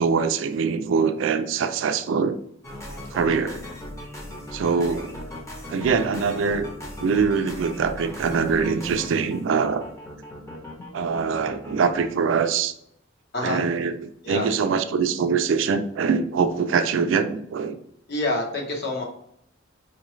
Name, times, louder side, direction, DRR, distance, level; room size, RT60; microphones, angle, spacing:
voice 1, 0.0-2.4 3.1-3.6 4.5-5.1 5.7-6.7 7.0-9.9 10.9-12.7 13.4-17.8, right 5 dB, 70° right, 9 dB, 0.4 m, -23 dB
sound 1, 2.6-12.1, left 1 dB, 15° left, 0.7 m, -38 dB
voice 2, 18.1-19.0, left 2 dB, 55° left, 0 dB, 0.9 m, -27 dB
4.4 x 2.4 x 3.1 m, 0.71 s
head